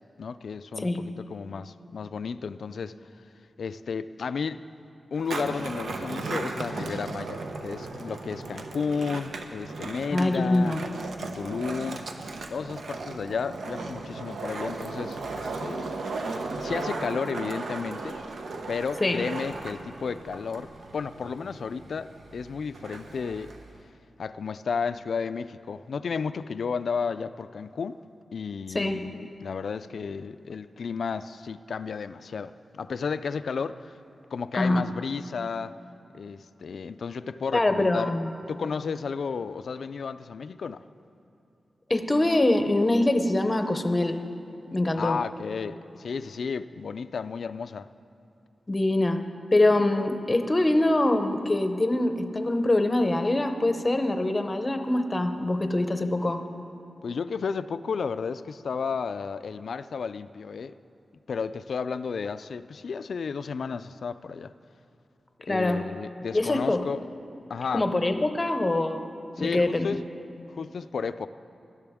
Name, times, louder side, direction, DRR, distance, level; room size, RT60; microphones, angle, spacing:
voice 1, 0.2-3.0 3.6-4.6 5.1-10.7 11.3-12.1 12.5-15.9 16.6-18.2 18.7-23.5 24.2-28.0 28.3-33.9 34.3-35.7 36.1-38.2 38.5-40.8 45.0-47.9 57.0-60.8 61.3-64.5 65.4-67.0 67.5-67.9 69.4-70.0 70.5-71.3, left 5 dB, 65° left, 13 dB, 0.3 m, -33 dB
Skateboard, 5.1-23.8, right 3 dB, 85° right, 0.8 m, -36 dB
voice 2, 10.1-10.8 19.0-19.2 28.7-29.0 34.5-34.8 37.5-38.3 41.9-44.2 44.7-45.2 48.7-49.2 49.5-56.4 65.5-65.8 66.3-66.8 67.7-69.0 69.4-69.9, left 2 dB, 20° left, 7 dB, 0.7 m, -24 dB
19.0 x 12.5 x 3.6 m, 2.8 s
wide cardioid pair, 160°, 0 cm